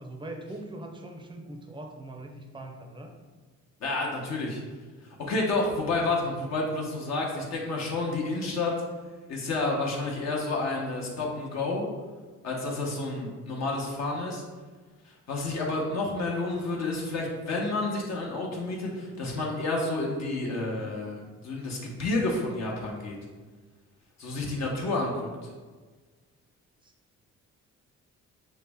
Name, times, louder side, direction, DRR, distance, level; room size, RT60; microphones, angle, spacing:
voice 1, 0.0-3.1 26.8-26.9, right 1 dB, 15° right, 3 dB, 0.5 m, -41 dB
voice 2, 3.8-4.6 5.2-8.7 9.3-11.9 12.4-14.4 15.1-23.2 24.2-25.3, left 2 dB, 60° left, -2 dB, 0.9 m, -30 dB
5.6 x 2.1 x 3.4 m, 1.4 s
cardioid pair, 90°, 30 cm